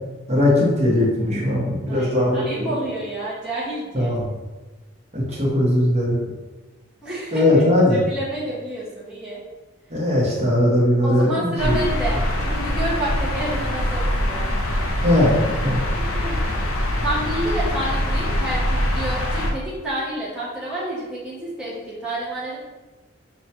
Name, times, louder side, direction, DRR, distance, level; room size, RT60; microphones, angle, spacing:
voice 1, 0.3-2.7 3.9-4.3 5.1-6.2 7.3-8.0 9.9-11.8 15.0-15.8, left 1 dB, 30° right, -4 dB, 0.9 m, -19 dB
voice 2, 1.9-4.1 7.0-9.4 11.0-14.5 16.0-16.4 17.0-22.6, right 1 dB, 5° right, -9 dB, 0.7 m, -29 dB
sound 1, 11.6-19.5, left 1 dB, 80° left, 0.5 m, -23 dB
6.1 x 2.2 x 2.8 m, 1.2 s
head